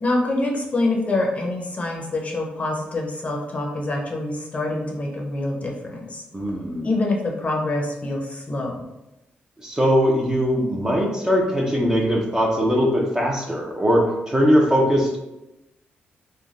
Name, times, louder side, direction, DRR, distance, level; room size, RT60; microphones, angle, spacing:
voice 1, 0.0-6.5 6.8-8.9, left 2 dB, 35° left, -1 dB, 0.6 m, -26 dB
voice 2, 6.3-6.9 9.6-15.2, equal, 15° right, -1 dB, 0.6 m, -20 dB
3.3 x 2.2 x 2.5 m, 0.93 s
cardioid pair, 80°, 4 cm